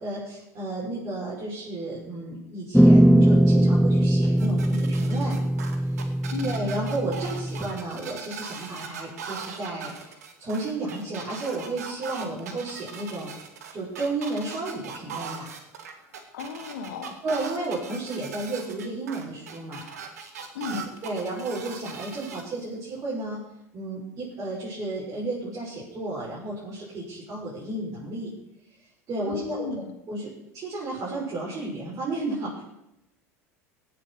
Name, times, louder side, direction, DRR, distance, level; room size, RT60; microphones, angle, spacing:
voice 1, 0.0-5.4 6.4-13.3 13.7-15.6 17.2-19.9 20.7-23.4 23.7-28.3 29.1-29.7 30.1-32.6, right 2 dB, 40° right, -7 dB, 6.2 m, -32 dB
sound 1, 2.7-7.8, right 1 dB, ahead, 0.4 m, -20 dB
sound 2, 4.4-22.4, right 6 dB, 80° right, 1.9 m, -39 dB
voice 2, 6.3-6.7 16.3-17.2 20.5-20.9 29.3-29.9, left 4 dB, 75° left, 5 dB, 2.2 m, -34 dB
17.0 x 7.3 x 6.6 m, 0.84 s
hypercardioid pair, 80°, 8 cm